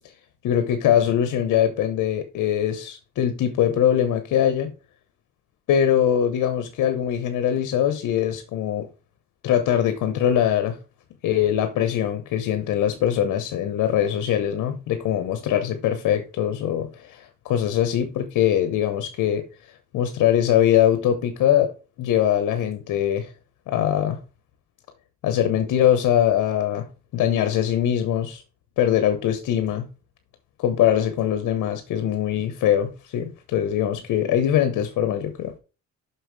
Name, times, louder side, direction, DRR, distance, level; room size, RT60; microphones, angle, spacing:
voice 1, 0.4-4.7 5.7-8.9 9.4-10.8 11.2-19.5 19.9-21.7 22.0-23.3 23.7-24.2 25.2-26.9 27.1-28.4 28.8-29.9 30.6-35.5, left 10 dB, 85° left, 1.2 m, -22 dB
6.2 x 5.7 x 4.8 m
cardioid pair, 90°, 30 cm